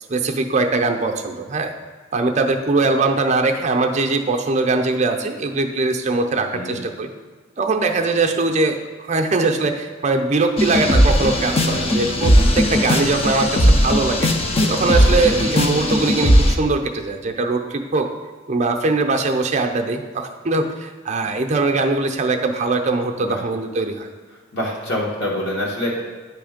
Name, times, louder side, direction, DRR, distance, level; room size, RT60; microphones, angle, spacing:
voice 1, 0.1-1.7 2.1-7.1 7.6-14.3 14.7-18.1 18.5-24.1, right 3 dB, 35° right, 3 dB, 0.5 m, -21 dB
sound 1, 10.6-16.5, equal, 30° left, 0.5 m, -17 dB
voice 2, 12.1-12.8 14.6-15.0 23.2-23.4 24.5-26.0, left 1 dB, 55° left, -4 dB, 1.3 m, -27 dB
9.3 x 3.2 x 5.0 m, 1.4 s
head